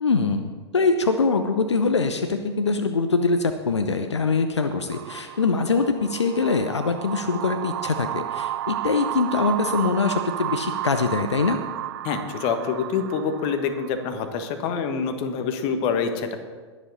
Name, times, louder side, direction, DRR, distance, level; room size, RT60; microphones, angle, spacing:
voice 1, 0.0-11.6, left 4 dB, 80° left, 7 dB, 0.8 m, -23 dB
sound 1, 4.7-14.2, right 14 dB, 60° right, 0.4 m, -32 dB
voice 2, 12.0-16.4, left 6 dB, 40° left, 7 dB, 1.4 m, -26 dB
20.5 x 7.3 x 4.1 m, 1.4 s
figure-of-eight pair, 100°, 14 cm